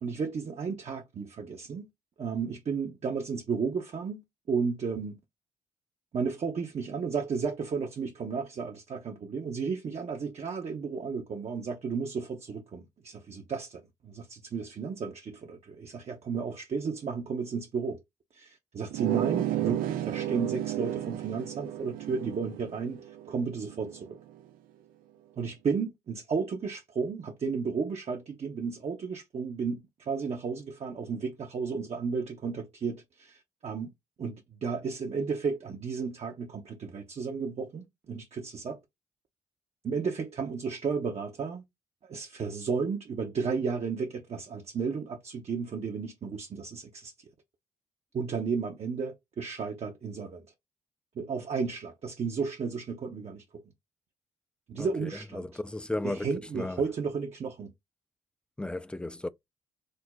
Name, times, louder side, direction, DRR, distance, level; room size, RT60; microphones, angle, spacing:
voice 1, 0.0-1.9 2.2-5.2 6.1-18.0 18.3-24.2 25.4-33.9 34.2-38.8 39.8-41.6 42.1-47.1 48.1-50.5 51.2-53.6 54.7-55.4 56.0-57.7, right 5 dB, 45° right, 0.7 m, -33 dB
sound 1, 18.9-24.2, right 12 dB, 70° right, 0.4 m, -33 dB
voice 2, 54.8-56.8 58.6-59.3, left 2 dB, 5° left, 0.3 m, -35 dB
2.6 x 2.0 x 3.8 m
hypercardioid pair, 45°, 15 cm